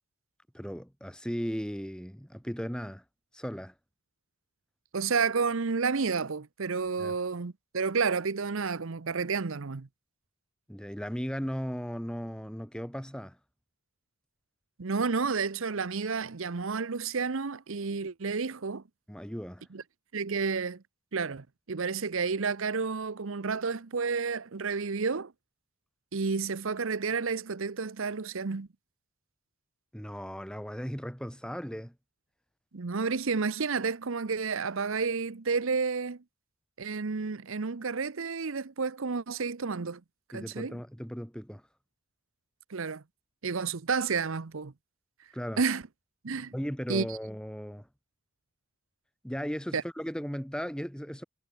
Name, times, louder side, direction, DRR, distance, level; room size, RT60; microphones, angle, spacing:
voice 1, 0.5-3.0 3.3-3.7 7.0-7.1 10.7-13.4 19.1-19.7 29.9-31.9 40.3-41.6 45.3-45.6 46.5-47.9 49.2-51.2, equal, 5° left, 3.5 m, -36 dB
voice 2, 4.9-9.9 14.8-18.8 19.7-19.8 20.1-20.8 21.1-25.3 26.1-28.7 32.7-36.2 36.8-40.0 40.3-40.8 42.7-43.0 43.4-44.7 45.6-45.8 46.2-46.5 46.9-47.1 49.7-49.8, right 5 dB, 65° right, 0.7 m, -30 dB
head